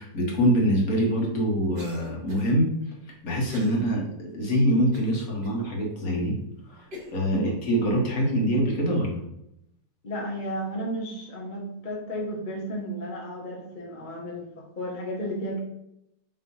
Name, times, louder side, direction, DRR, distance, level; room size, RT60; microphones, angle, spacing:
voice 1, 0.0-2.7 3.2-6.3 6.7-6.9 7.1-9.2, equal, 55° left, -2 dB, 1.8 m, -24 dB
Cough, 1.8-2.6 3.5-3.8 4.3-4.4 4.9-5.6 6.2-6.3 6.9-7.2, left 3 dB, 35° right, 1.3 m, -41 dB
voice 2, 10.0-15.6, equal, 35° left, -1 dB, 1.0 m, -33 dB
5.7 x 3.2 x 5.5 m, 0.80 s
omnidirectional pair, 1.9 m